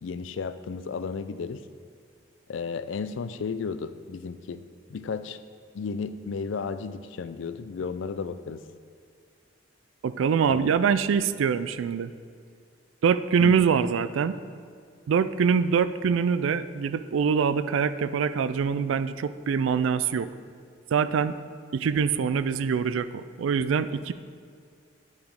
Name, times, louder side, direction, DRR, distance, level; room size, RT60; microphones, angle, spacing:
voice 1, 0.0-1.6 2.5-4.6 4.9-5.4 5.7-8.6 10.5-10.8 13.4-13.5, left 5 dB, 75° left, 13 dB, 0.4 m, -33 dB
voice 2, 10.0-12.1 13.0-14.4 15.1-20.3 20.9-21.4 21.7-24.1, right 6 dB, 85° right, 14 dB, 0.3 m, -24 dB
9.6 x 4.9 x 5.2 m, 2.2 s
head